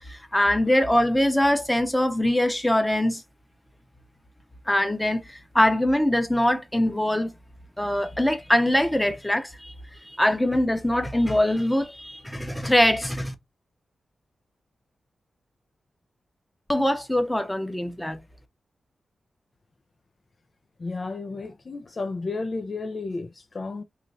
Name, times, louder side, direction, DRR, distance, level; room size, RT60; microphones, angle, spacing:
voice 1, 0.1-3.2 4.7-7.3 7.8-9.7 10.0-13.3 16.7-18.2, left 1 dB, 10° left, 0.7 m, -23 dB
voice 2, 20.8-23.8, left 3 dB, 45° left, 0.4 m, -32 dB
3.0 x 2.4 x 4.0 m
cardioid pair, 75°, 0 cm